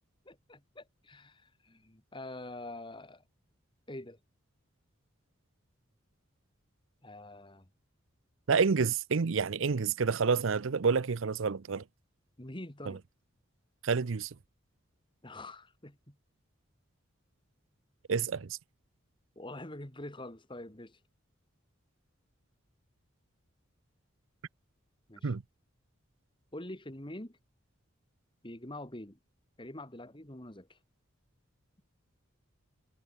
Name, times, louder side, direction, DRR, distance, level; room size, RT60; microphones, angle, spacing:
voice 1, 0.3-3.2 3.9-4.2 7.0-7.7 12.4-13.0 15.2-16.2 19.4-21.0 25.1-25.3 26.5-27.4 28.4-29.2 29.6-30.8, left 1 dB, 25° left, 2.5 m, -45 dB
voice 2, 8.5-11.8 12.9-13.0 13.8-14.3 18.1-18.6 25.2-25.4, right 5 dB, 70° right, 0.6 m, -28 dB
head